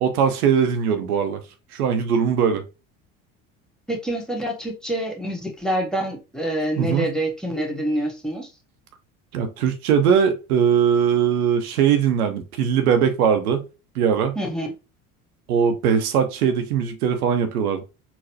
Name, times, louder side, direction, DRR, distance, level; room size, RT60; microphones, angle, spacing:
voice 1, 0.0-1.4 1.7-2.6 6.8-7.1 9.3-13.6 14.0-14.4 15.5-17.8, right 7 dB, 80° right, 0.7 m, -20 dB
voice 2, 3.9-8.5 14.3-14.7, right 1 dB, ahead, 1.0 m, -26 dB
4.0 x 2.1 x 2.7 m
hypercardioid pair, 70°, 44 cm